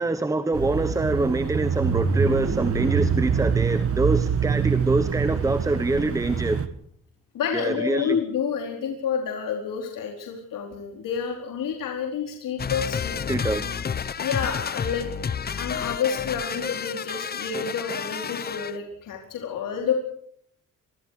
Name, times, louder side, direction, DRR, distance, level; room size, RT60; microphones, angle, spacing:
voice 1, 0.0-6.6 7.5-8.2 13.3-13.8, right 2 dB, 10° right, 11 dB, 1.0 m, -25 dB
Bicycle / Mechanisms, 0.5-6.7, right 6 dB, 45° right, 1.8 m, -25 dB
voice 2, 7.3-13.4 14.2-15.1 15.6-19.9, left 7 dB, 75° left, 2 dB, 4.5 m, -29 dB
sound 1, 12.6-18.8, left 7 dB, 30° left, 0.9 m, -30 dB
27.5 x 23.0 x 4.9 m, 0.63 s
wide cardioid pair, 180°, 33 cm